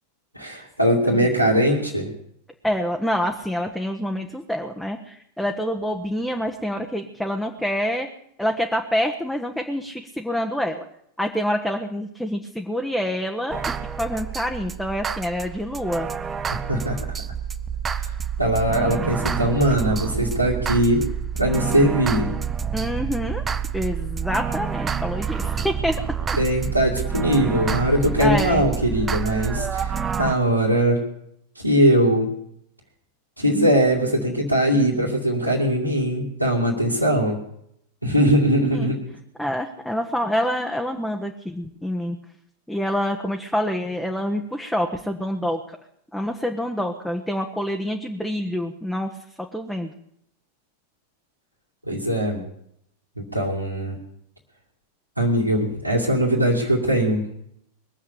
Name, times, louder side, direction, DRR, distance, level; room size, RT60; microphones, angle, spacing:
voice 1, 0.3-2.1 16.7-17.0 18.0-18.1 18.4-21.0 21.3-22.3 26.4-31.0 31.6-32.3 33.4-37.4 38.0-39.0 51.8-52.4 53.2-54.0 55.2-57.2, equal, 90° right, -6 dB, 2.5 m, -21 dB
voice 2, 2.6-8.1 8.4-10.8 11.2-16.1 22.7-23.4 23.7-26.4 28.2-28.7 38.7-38.9 39.4-42.2 42.7-45.8 46.1-49.9, equal, ahead, 2 dB, 1.1 m, -27 dB
sound 1, 13.5-30.3, right 7 dB, 20° right, 0.7 m, -28 dB
21.5 x 7.4 x 8.4 m, 0.73 s
figure-of-eight pair, 90°, 0 cm